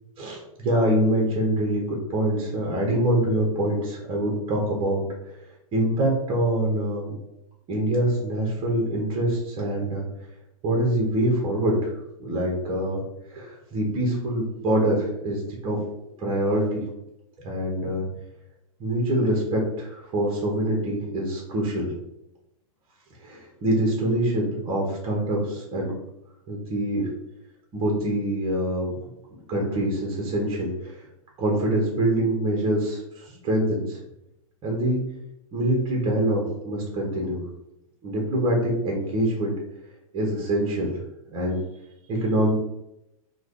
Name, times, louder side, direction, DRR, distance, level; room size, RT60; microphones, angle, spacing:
voice 1, 0.2-5.0 5.7-7.1 7.7-10.0 10.6-11.8 12.2-13.0 13.3-15.8 16.2-16.8 17.4-18.1 18.8-21.9 23.2-25.9 26.5-27.1 27.7-28.9 29.5-31.1 31.4-34.0 34.6-35.0 35.5-37.4 38.0-39.5 40.1-40.9 41.3-41.6 42.1-42.5, right 1 dB, 30° right, -1 dB, 0.9 m, -25 dB
3.2 x 2.3 x 3.7 m, 0.85 s
hypercardioid pair, 130°, 18 cm